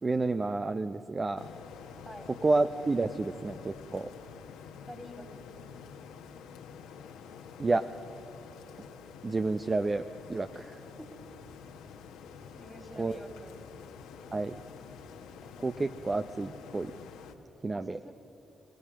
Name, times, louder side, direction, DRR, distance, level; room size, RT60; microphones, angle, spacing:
voice 1, 0.0-1.5 2.3-4.1 7.6-7.9 9.2-10.6 13.0-13.2 14.3-14.6 15.6-16.9 17.6-18.0, right 3 dB, 35° right, 10 dB, 0.7 m, -30 dB
sound 1, 1.4-17.3, left 6 dB, 90° left, 1.3 m, -48 dB
voice 2, 4.9-5.5 11.0-11.1 12.5-13.6 17.7-18.1, equal, 10° right, 6 dB, 2.8 m, -48 dB
29.5 x 17.5 x 6.3 m, 2.9 s
supercardioid pair, 50°, 0 cm